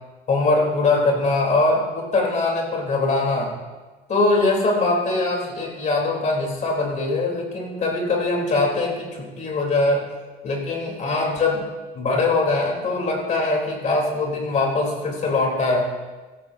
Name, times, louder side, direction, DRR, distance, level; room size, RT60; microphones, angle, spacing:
voice 1, 0.3-3.6 4.1-10.1 10.4-11.7 11.9-15.9, left 2 dB, 45° left, 0 dB, 3.9 m, -22 dB
16.5 x 13.5 x 2.9 m, 1.3 s
cardioid pair, 110°, 17 cm